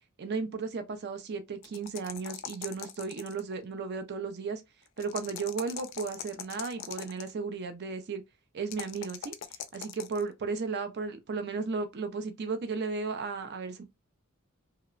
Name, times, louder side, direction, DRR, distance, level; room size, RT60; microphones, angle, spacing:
voice 1, 0.2-4.6 5.0-8.2 8.5-9.3 9.7-13.8, right 4 dB, 50° right, 0.4 m, -35 dB
sound 1, 1.6-3.5 5.0-7.3 8.7-10.2, left 10 dB, 60° left, 0.3 m, -41 dB
2.8 x 2.1 x 2.3 m
head